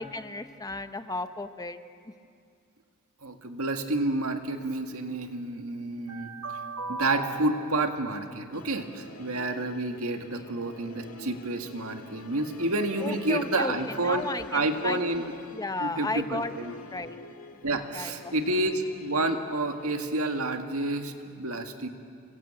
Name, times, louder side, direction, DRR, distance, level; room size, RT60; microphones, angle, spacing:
voice 1, 0.0-1.8 2.0-2.1 10.3-10.5 13.0-15.2 15.5-17.2 17.7-18.3, left 2 dB, 15° left, 10 dB, 0.8 m, -35 dB
voice 2, 3.2-14.3 14.5-15.3 15.8-16.6 17.6-21.9, right 2 dB, 75° right, 6 dB, 1.9 m, -29 dB
Musical instrument, 8.5-20.1, left 2 dB, 75° left, 1.9 m, -47 dB
28.0 x 22.0 x 8.8 m, 2.4 s
head